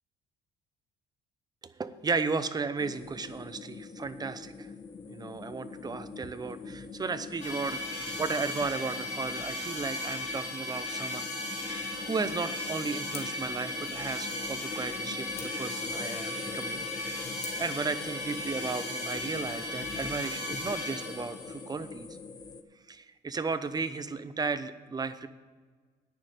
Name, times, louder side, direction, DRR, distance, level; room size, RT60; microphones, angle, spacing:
voice 1, 1.6-4.7 5.1-11.3 11.6-16.8 17.6-22.1 22.9-25.3, right 4 dB, 25° right, 12 dB, 0.7 m, -35 dB
sound 1, 2.8-22.6, left 4 dB, 25° left, 0.7 m, -43 dB
sound 2, 7.4-21.5, left 1 dB, 40° left, 3.2 m, -36 dB
sound 3, 13.1-18.5, left 8 dB, 85° left, 1.7 m, -51 dB
9.5 x 6.6 x 8.4 m, 1.5 s
cardioid pair, 110°, 17 cm